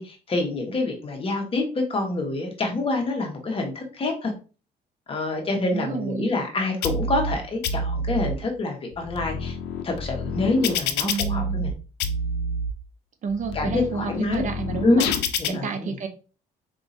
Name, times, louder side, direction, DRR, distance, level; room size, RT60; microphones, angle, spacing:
voice 1, 0.0-4.3 5.1-9.5 9.8-11.7 13.5-14.5 14.8-15.1 15.4-15.9, left 2 dB, 35° left, 2 dB, 1.3 m, -26 dB
voice 2, 5.7-6.3 11.0-11.6 13.2-15.1 15.4-16.1, right 5 dB, 50° right, 6 dB, 0.7 m, -30 dB
sound 1, 6.8-7.3 7.6-8.3 8.9-11.7 12.0-12.7 13.3-15.5, left 2 dB, 85° left, 0.5 m, -28 dB
4.2 x 3.6 x 2.7 m, 0.35 s
cardioid pair, 110°, 17 cm